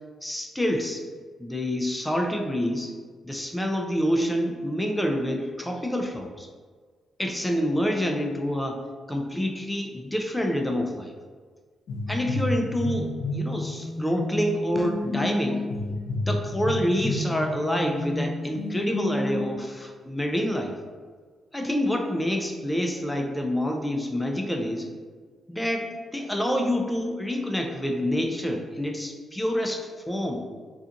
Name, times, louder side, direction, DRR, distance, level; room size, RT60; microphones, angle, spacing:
voice 1, 0.2-1.0 1.4-2.9 3.2-6.5 7.2-8.8 9.1-11.1 12.1-15.6 16.3-20.7 21.5-24.9 25.5-30.4, equal, 10° left, 3 dB, 0.4 m, -27 dB
sound 1, 11.9-19.5, left 2 dB, 80° left, 0.6 m, -30 dB
2.4 x 2.4 x 2.6 m, 1.6 s
supercardioid pair, 55°, 0 cm